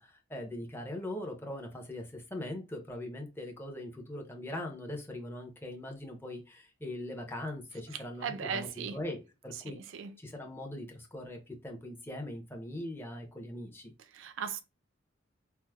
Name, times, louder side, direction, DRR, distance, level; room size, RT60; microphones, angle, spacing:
voice 1, 0.0-9.8 10.2-13.9, left 1 dB, 10° left, 0.6 m, -41 dB
voice 2, 8.2-9.0 9.6-10.2 14.1-14.6, right 6 dB, 70° right, 0.4 m, -37 dB
4.5 x 2.0 x 2.2 m
head